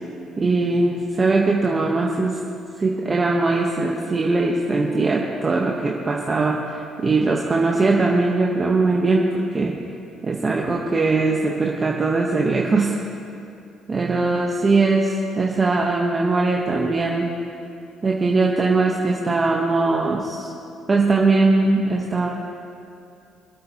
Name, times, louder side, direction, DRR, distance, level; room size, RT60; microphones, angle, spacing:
voice 1, 0.4-2.3 2.8-9.7 10.2-13.0 13.9-17.3 18.0-20.5 20.9-22.3, right 3 dB, 35° right, -1 dB, 1.2 m, -20 dB
25.5 x 8.6 x 3.0 m, 2.6 s
hypercardioid pair, 60°, 0 cm